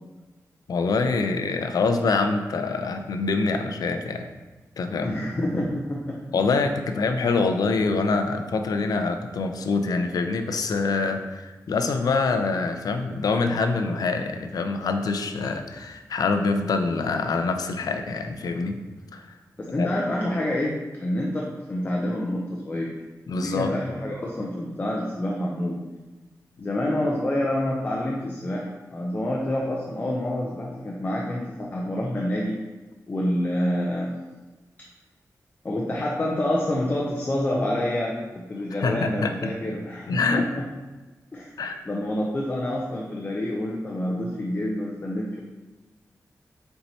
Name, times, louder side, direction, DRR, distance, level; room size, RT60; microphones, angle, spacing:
voice 1, 0.7-4.3 4.8-5.2 6.3-18.8 19.1-19.4 19.8-19.9 23.3-23.7 38.8-39.5 40.1-40.5 41.6-41.8, left 4 dB, 90° left, 6 dB, 0.4 m, -25 dB
voice 2, 5.0-6.2 19.6-22.9 23.3-25.8 26.6-32.5 33.1-34.1 35.6-40.4 41.3-41.6 41.8-45.4, left 1 dB, 25° left, -2 dB, 0.5 m, -27 dB
4.4 x 4.1 x 2.7 m, 1.2 s
wide cardioid pair, 155°, 6 cm